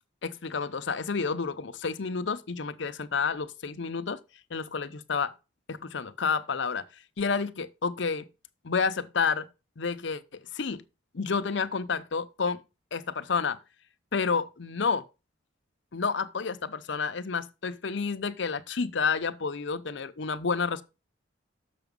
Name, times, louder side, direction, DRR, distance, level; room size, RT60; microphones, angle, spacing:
voice 1, 0.2-4.2 4.5-5.3 5.7-6.9 7.2-8.3 8.6-9.5 9.8-10.8 11.1-12.6 12.9-13.6 14.1-15.0 15.9-20.8, left 5 dB, 65° left, 0.6 m, -30 dB
6.9 x 5.9 x 5.2 m
head